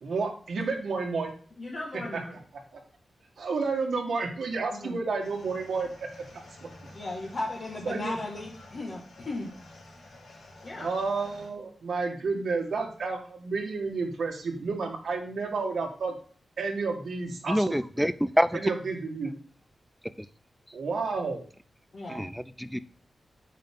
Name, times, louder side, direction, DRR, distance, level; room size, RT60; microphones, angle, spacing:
voice 1, 0.0-1.3 2.1-2.2 2.7-2.8 3.4-6.1 7.8-8.2 10.8-16.1 16.6-18.1 18.5-19.3 20.7-21.4, right 4 dB, 70° right, 2 dB, 1.6 m, -31 dB
voice 2, 1.6-2.4 4.7-5.0 6.9-9.5 10.6-10.9 21.9-22.3, left 2 dB, 40° left, -4 dB, 1.7 m, -36 dB
sound 1, 5.2-11.5, left 2 dB, 90° left, 4.4 m, -50 dB
voice 3, 17.5-18.6 22.1-22.8, equal, ahead, 14 dB, 0.4 m, -26 dB
8.7 x 5.6 x 3.7 m, 0.44 s
wide cardioid pair, 170°, 0 cm